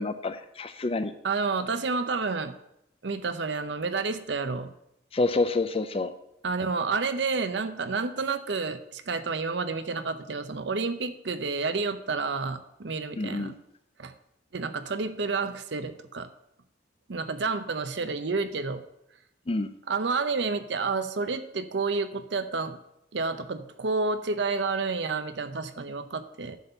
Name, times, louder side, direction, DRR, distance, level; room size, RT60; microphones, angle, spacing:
voice 1, 0.0-1.1 5.1-6.1 13.2-13.5 19.5-19.7, left 3 dB, 30° left, 11 dB, 0.5 m, -28 dB
voice 2, 1.2-2.5 3.0-4.7 6.4-13.5 14.0-14.1 14.5-16.3 17.1-18.8 19.9-22.8 23.1-26.6, right 4 dB, 70° right, 10 dB, 0.7 m, -30 dB
10.5 x 4.2 x 6.8 m, 0.81 s
head